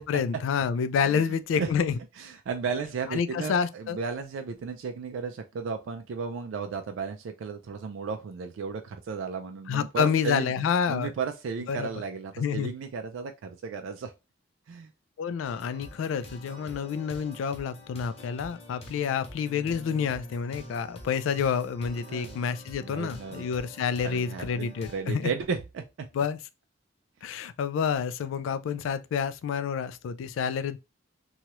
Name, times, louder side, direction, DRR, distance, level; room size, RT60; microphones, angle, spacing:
voice 1, 0.0-2.0 3.1-4.0 9.7-11.1 11.7-11.9 12.4-12.7 15.2-25.3 26.1-26.4 27.2-30.8, left 7 dB, 85° left, 0.3 m, -28 dB
voice 2, 1.1-1.7 2.2-10.5 10.9-14.1 14.7-14.9 22.1-22.4 22.8-23.5 24.0-26.1, right 5 dB, 80° right, 0.3 m, -34 dB
sound 1, 15.4-25.0, equal, 30° left, 0.6 m, -46 dB
2.9 x 2.3 x 2.9 m
head